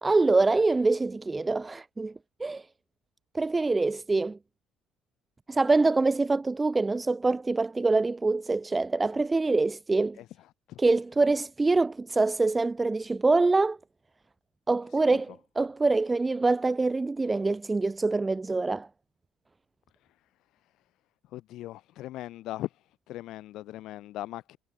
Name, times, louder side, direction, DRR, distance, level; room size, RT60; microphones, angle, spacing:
voice 1, 0.0-2.1 2.4-2.7 3.3-4.4 5.5-10.2 10.8-13.8 14.7-18.9, right 3 dB, 20° right, 0.3 m, -25 dB
voice 2, 21.3-22.7 23.1-24.6, left 15 dB, 60° left, 0.6 m, -39 dB
figure-of-eight pair, 55°, 0 cm